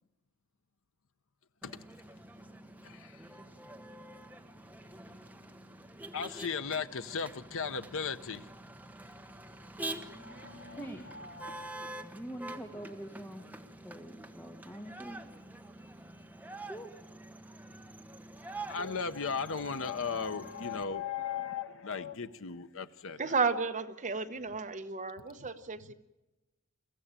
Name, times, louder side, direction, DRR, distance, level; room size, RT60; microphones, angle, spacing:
Motor vehicle (road), 1.6-20.8, right 2 dB, 10° right, 1.1 m, -47 dB
voice 1, 2.8-3.2 6.1-8.5 9.8-11.7 18.7-23.3, left 5 dB, 65° left, 0.8 m, -37 dB
voice 2, 10.7-11.0 12.0-13.6 13.8-15.3 16.7-17.0, right 1 dB, 10° left, 1.4 m, -44 dB
voice 3, 23.2-25.9, right 4 dB, 35° right, 1.1 m, -33 dB
23.0 x 15.0 x 8.9 m
head